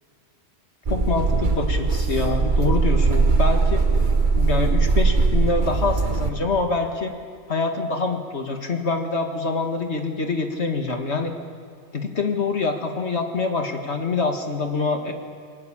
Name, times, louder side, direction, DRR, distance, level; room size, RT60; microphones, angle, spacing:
voice 1, 0.9-3.8 4.4-7.1 7.5-11.4 11.9-15.1, left 3 dB, 55° left, 4 dB, 2.1 m, -25 dB
sound 1, 0.9-6.3, right 4 dB, 35° right, 1.3 m, -20 dB
20.5 x 18.5 x 8.6 m, 2.2 s
omnidirectional pair, 1.4 m